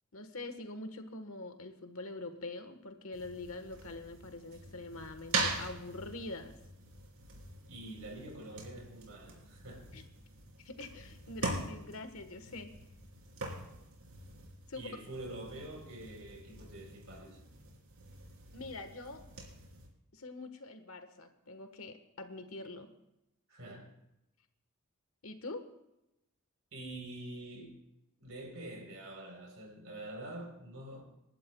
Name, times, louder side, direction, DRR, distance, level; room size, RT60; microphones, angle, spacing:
voice 1, 0.1-6.5 9.9-10.0 10.6-12.7 14.7-14.9 18.5-19.2 20.1-22.9 25.2-25.6, left 2 dB, 75° left, 1.3 m, -44 dB
sound 1, 3.1-19.9, right 3 dB, 90° right, 3.4 m, -43 dB
voice 2, 7.7-10.1 14.7-17.4 23.5-23.9 26.7-27.8 28.2-31.0, right 1 dB, 65° right, 3.8 m, -46 dB
28.0 x 11.5 x 2.3 m
head